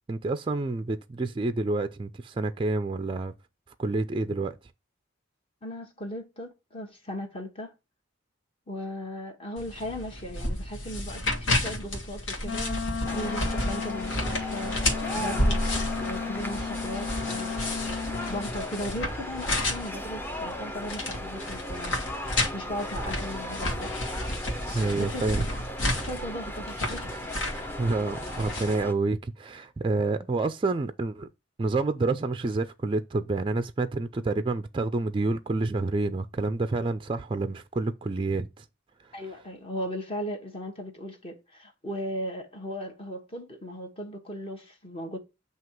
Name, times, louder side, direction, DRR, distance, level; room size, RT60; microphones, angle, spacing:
voice 1, 0.1-3.3 3.8-4.5 24.7-25.4 27.8-31.3 31.6-38.6, right 3 dB, 25° right, 0.3 m, -28 dB
voice 2, 5.6-7.7 8.7-15.6 16.0-17.6 18.1-22.0 22.5-23.9 25.0-25.3 26.0-27.1 39.1-45.2, equal, 30° left, 1.1 m, -37 dB
sound 1, 9.6-28.8, left 1 dB, 75° left, 1.5 m, -32 dB
Wind instrument woodwind instrument, 12.4-18.5, left 6 dB, 90° left, 0.5 m, -34 dB
sound 2, 13.0-28.9, left 1 dB, 10° left, 0.6 m, -38 dB
7.6 x 2.9 x 4.5 m
head